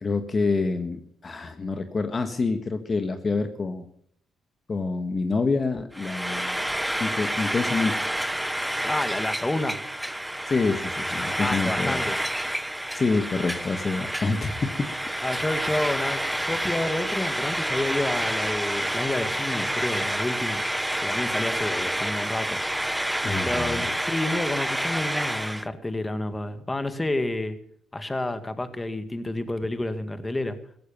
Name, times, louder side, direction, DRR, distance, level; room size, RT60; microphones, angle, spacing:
voice 1, 0.0-3.8 4.7-6.6 7.0-7.9 10.5-12.0 12.9-14.9 23.2-23.8, left 3 dB, 35° left, 8 dB, 1.5 m, -27 dB
Frying (food), 5.9-25.7, right 1 dB, 5° right, 0.6 m, -28 dB
voice 2, 8.8-9.8 11.4-12.2 15.2-20.6 21.0-22.6 23.4-27.5 27.9-30.6, left 1 dB, 15° left, 10 dB, 1.9 m, -29 dB
17.0 x 14.5 x 5.5 m, 0.66 s
cardioid pair, 90°, 0 cm